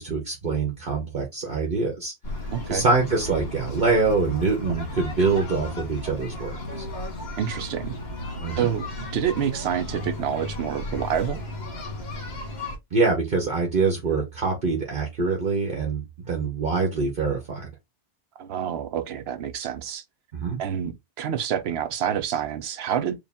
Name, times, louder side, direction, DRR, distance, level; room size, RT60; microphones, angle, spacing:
voice 1, 0.0-2.1 2.7-6.9 8.4-8.7 12.9-17.7 20.3-20.6, right 4 dB, 55° right, 1.2 m, -25 dB
sound 1, 2.2-12.8, left 2 dB, 65° left, 1.5 m, -34 dB
voice 2, 2.5-2.9 7.4-8.0 8.6-11.4 18.4-20.0 20.6-23.2, right 9 dB, 70° right, 0.9 m, -28 dB
4.8 x 2.5 x 3.5 m
omnidirectional pair, 1.1 m